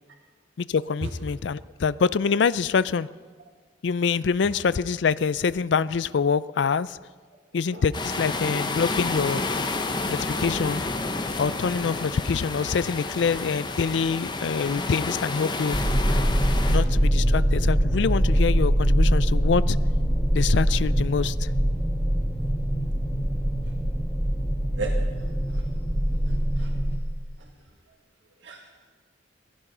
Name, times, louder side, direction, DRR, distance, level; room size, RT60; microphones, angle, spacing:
voice 1, 0.6-3.1 3.8-7.0 7.5-9.4 10.0-10.8 11.4-15.8 16.7-19.8 20.3-21.5, left 5 dB, 75° left, 18 dB, 0.4 m, -25 dB
sound 1, 7.9-16.8, left 3 dB, 25° left, 0.9 m, -30 dB
sound 2, 15.7-27.0, equal, 5° left, 1.7 m, -23 dB
voice 2, 24.7-25.6 26.2-26.7 27.4-27.5 28.4-28.7, right 3 dB, 90° right, 1 dB, 1.7 m, -36 dB
17.0 x 14.5 x 5.5 m, 1.5 s
head